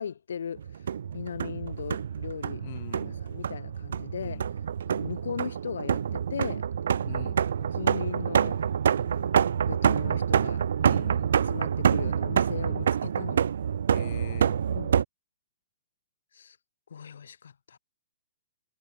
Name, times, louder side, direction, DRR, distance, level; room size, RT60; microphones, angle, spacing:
voice 1, 0.0-2.6 3.2-4.4 4.9-6.6 7.6-8.6 8.9-10.6 11.5-13.4 14.7-15.0 16.3-16.6 16.9-17.8, left 7 dB, 85° left, 3.0 m, -38 dB
sound 1, 0.6-15.0, right 8 dB, 70° right, 0.4 m, -27 dB
voice 2, 2.6-3.3 4.2-4.5 7.0-7.4 10.8-11.5 13.9-14.6, left 15 dB, 35° left, 6.0 m, -43 dB
hypercardioid pair, 175°, 0 cm